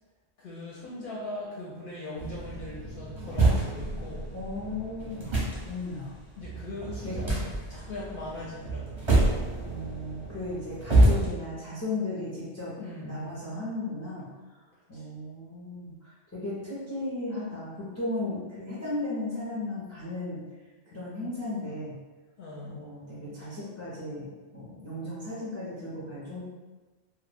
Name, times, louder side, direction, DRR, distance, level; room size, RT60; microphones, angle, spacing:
voice 1, 0.4-4.3 6.4-8.9 12.8-13.4 14.9-15.1 22.4-22.9, left 2 dB, 60° left, -6 dB, 0.6 m, -40 dB
sound 1, 2.2-11.3, right 2 dB, 30° right, 0.6 m, -27 dB
voice 2, 4.3-5.4 5.7-6.1 7.0-7.2 9.6-12.7 13.0-14.3 14.9-20.4 20.9-22.0 22.6-26.4, left 2 dB, 25° left, -9 dB, 0.4 m, -35 dB
2.2 x 2.0 x 3.3 m, 1.3 s
omnidirectional pair, 1.1 m